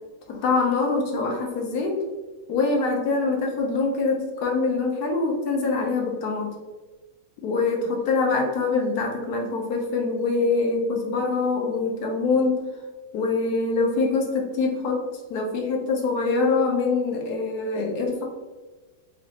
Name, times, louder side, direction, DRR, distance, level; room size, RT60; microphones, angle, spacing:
voice 1, 0.3-2.0 2.5-6.5 7.4-12.6 13.1-15.0 15.3-18.2, left 3 dB, 65° left, 1 dB, 1.1 m, -24 dB
5.0 x 2.4 x 2.8 m, 1.3 s
omnidirectional pair, 2.1 m